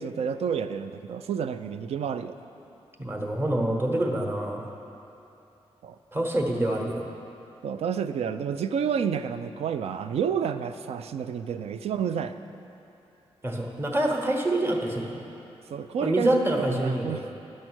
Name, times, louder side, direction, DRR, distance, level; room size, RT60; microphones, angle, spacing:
voice 1, 0.0-2.4 5.8-6.0 7.6-12.4 15.7-17.3, right 7 dB, 75° right, 10 dB, 0.4 m, -30 dB
voice 2, 3.0-4.7 6.1-7.1 13.4-15.2 16.0-17.3, right 1 dB, 20° right, 2 dB, 1.0 m, -26 dB
10.0 x 6.4 x 6.2 m, 2.8 s
wide cardioid pair, 140°, 11 cm